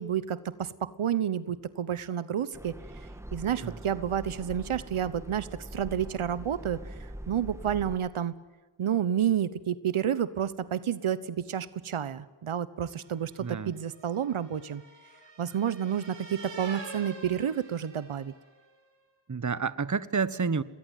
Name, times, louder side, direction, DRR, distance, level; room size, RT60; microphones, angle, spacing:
voice 1, 0.0-2.8 3.3-8.4 8.8-14.8 15.4-18.3, right 9 dB, 80° right, 16 dB, 1.1 m, -30 dB
sound 1, 2.5-8.0, right 1 dB, 5° right, 2.5 m, -43 dB
sound 2, 13.1-18.5, right 3 dB, 60° right, 8.0 m, -46 dB
voice 2, 13.4-13.7 19.3-20.6, right 5 dB, 35° right, 16 dB, 1.3 m, -29 dB
27.5 x 21.0 x 9.3 m, 1.3 s
cardioid pair, 50°, 49 cm